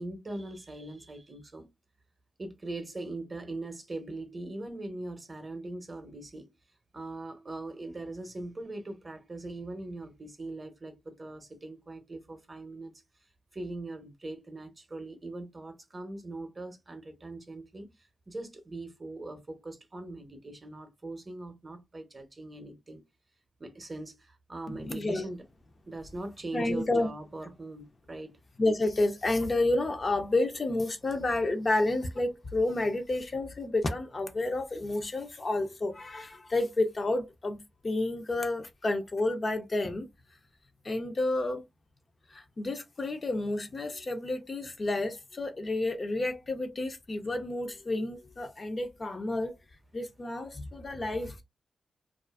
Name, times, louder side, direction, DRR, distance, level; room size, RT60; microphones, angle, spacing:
voice 1, 0.0-1.7 2.4-6.5 6.9-13.0 13.5-17.9 18.3-23.0 23.6-25.4 25.9-28.3, right 2 dB, 30° right, 0.7 m, -41 dB
voice 2, 24.7-25.2 26.5-27.1 28.6-37.6 37.8-40.1 40.8-41.6 42.3-49.5 49.9-51.4, left 2 dB, 35° left, 0.5 m, -30 dB
2.4 x 2.4 x 2.3 m
wide cardioid pair, 100°, 0 cm